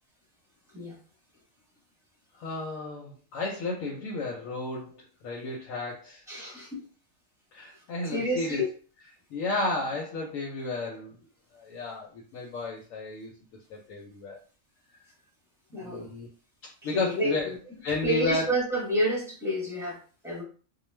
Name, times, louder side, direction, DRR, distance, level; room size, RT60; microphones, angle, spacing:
voice 1, 2.3-6.7 7.5-8.6 9.3-11.2 11.5-13.3 13.7-14.4 15.7-16.3 16.6-17.5 17.8-18.5, left 2 dB, 85° left, -2 dB, 1.0 m, -33 dB
voice 2, 6.3-6.8 8.1-8.7 15.7-16.1 16.9-17.3 18.0-20.0 20.2-20.4, equal, 5° right, -4 dB, 0.8 m, -29 dB
2.3 x 2.1 x 3.1 m, 0.38 s
omnidirectional pair, 1.4 m